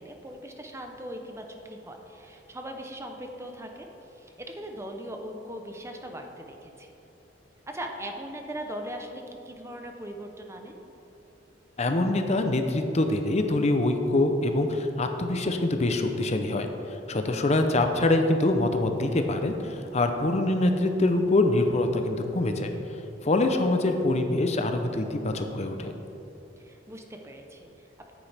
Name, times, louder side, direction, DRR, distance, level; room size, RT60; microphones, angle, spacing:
voice 1, 0.0-6.9 7.7-10.7 17.2-17.6 26.6-28.1, right 1 dB, 15° right, 3 dB, 0.7 m, -40 dB
voice 2, 11.8-16.7 17.1-22.7 23.2-25.9, left 2 dB, 35° left, 6 dB, 0.7 m, -24 dB
9.6 x 8.8 x 3.5 m, 2.9 s
head